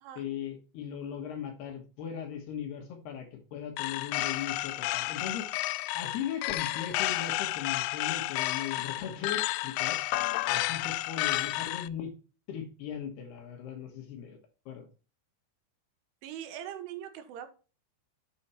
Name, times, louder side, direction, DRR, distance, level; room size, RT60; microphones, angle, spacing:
voice 1, 0.2-5.5 5.9-10.0 10.5-12.1 12.5-14.4 14.7-14.9, left 8 dB, 65° left, 3.3 m, -38 dB
sound 1, 3.8-11.9, left 18 dB, 85° left, 3.0 m, -31 dB
voice 2, 16.2-17.5, right 10 dB, 80° right, 3.5 m, -41 dB
8.4 x 6.3 x 4.4 m
omnidirectional pair, 5.6 m